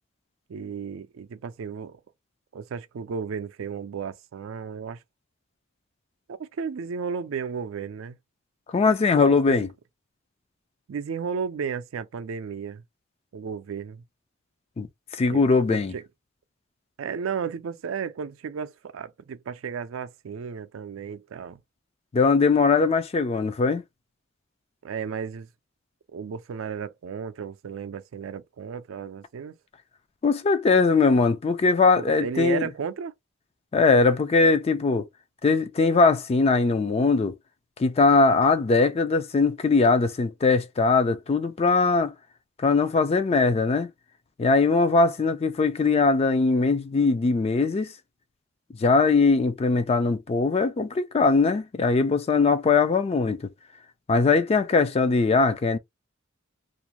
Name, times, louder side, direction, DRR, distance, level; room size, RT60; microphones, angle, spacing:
voice 1, 0.5-2.0 2.5-5.0 6.4-8.2 9.3-9.7 10.9-12.8 13.3-14.0 15.3-15.4 15.7-16.0 17.0-21.6 24.8-25.5 26.1-29.5 32.0-33.1, right 6 dB, 75° right, 0.4 m, -33 dB
voice 2, 8.7-9.7 14.8-14.9 15.1-15.9 22.1-23.8 30.2-32.7 33.7-35.1 35.4-37.3 37.8-42.1 42.6-43.9 44.4-47.9 48.8-53.5 54.1-55.8, left 4 dB, 30° left, 0.3 m, -21 dB
2.5 x 2.1 x 2.9 m
head